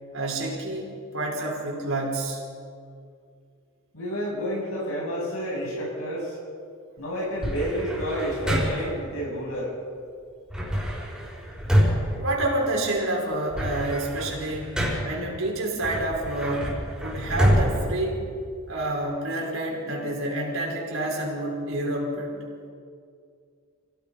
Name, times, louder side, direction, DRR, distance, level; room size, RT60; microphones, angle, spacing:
voice 1, 0.1-2.4 12.2-14.7 15.0-18.2 18.7-22.4, right 1 dB, 65° right, -1 dB, 5.6 m, -28 dB
voice 2, 3.9-6.4 7.0-9.7, equal, 80° left, -4 dB, 8.0 m, -30 dB
sound 1, 7.4-9.1 10.5-13.0 13.3-15.3 15.8-18.8, equal, 5° right, 5.8 m, -27 dB
29.5 x 17.5 x 5.6 m, 2.3 s
head